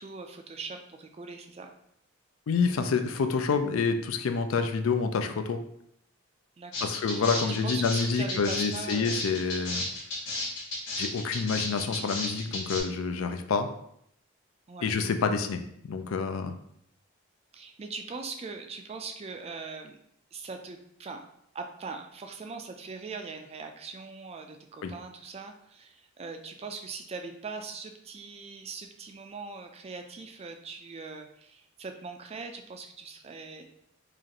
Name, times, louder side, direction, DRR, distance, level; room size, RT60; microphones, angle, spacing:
voice 1, 0.0-1.7 6.6-6.9 7.2-9.2 14.7-14.9 17.5-20.0 20.3-21.2 21.5-33.6, right 4 dB, 30° right, 5 dB, 0.3 m, -41 dB
voice 2, 2.5-5.6 6.8-9.8 11.0-13.7 14.8-15.6 15.9-16.6 24.8-24.9, left 5 dB, 70° left, 8 dB, 0.4 m, -28 dB
sound 1, 6.7-12.8, left 2 dB, 55° left, 1.4 m, -33 dB
4.8 x 2.5 x 2.9 m, 0.71 s
head